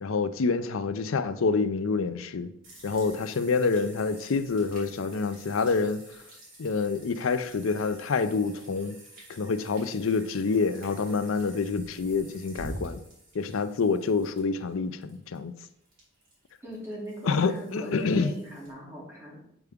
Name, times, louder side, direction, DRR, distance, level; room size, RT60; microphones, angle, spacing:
voice 1, 0.0-2.5 2.8-6.0 6.6-9.0 9.3-13.0 13.3-15.5 17.2-18.3, left 4 dB, 80° left, 0.5 m, -27 dB
sound 1, 2.6-18.7, right 1 dB, 45° right, 2.5 m, -48 dB
voice 2, 16.6-19.4, equal, 10° right, 2.5 m, -40 dB
8.0 x 4.7 x 3.5 m
head